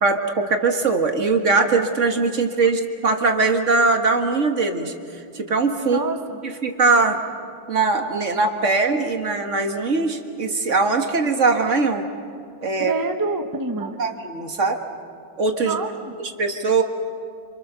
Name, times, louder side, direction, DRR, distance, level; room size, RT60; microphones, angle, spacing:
voice 1, 0.0-4.9 5.3-6.0 6.4-7.2 7.7-12.1 12.6-12.9 14.0-14.8 15.4-15.8 16.2-16.8, right 3 dB, 40° right, 5 dB, 1.8 m, -21 dB
voice 2, 5.8-6.4 12.8-14.0 15.6-16.1, right 3 dB, 20° right, 6 dB, 0.5 m, -27 dB
27.0 x 26.5 x 6.9 m, 2.4 s
omnidirectional pair, 2.2 m